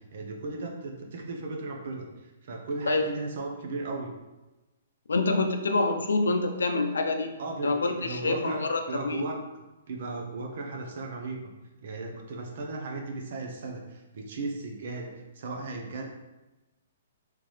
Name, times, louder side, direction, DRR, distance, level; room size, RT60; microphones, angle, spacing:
voice 1, 0.0-4.1 7.4-9.4 9.9-11.4 11.8-16.0, right 3 dB, 60° right, 2 dB, 0.7 m, -36 dB
voice 2, 5.1-7.4 7.6-9.3, left 3 dB, 80° left, 5 dB, 0.5 m, -26 dB
3.7 x 3.2 x 3.1 m, 1.1 s
hypercardioid pair, 125°, 0 cm